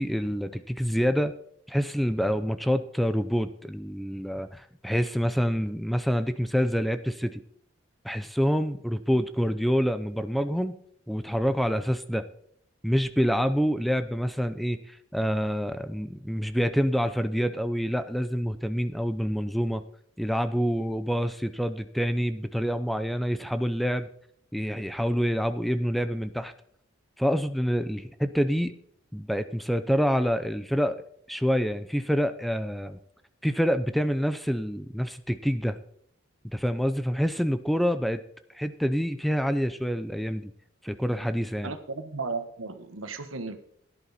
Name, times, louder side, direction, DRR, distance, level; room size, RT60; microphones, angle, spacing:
voice 1, 0.0-1.3 1.7-7.4 8.0-10.8 11.1-12.2 12.8-19.8 20.2-24.1 24.5-26.5 27.2-28.7 29.1-31.0 31.3-33.0 33.4-35.8 36.5-38.2 38.5-40.5 40.8-41.7, equal, ahead, 10 dB, 0.5 m, -27 dB
voice 2, 41.6-43.6, right 4 dB, 85° right, 8 dB, 1.3 m, -35 dB
17.0 x 11.0 x 4.1 m, 0.67 s
head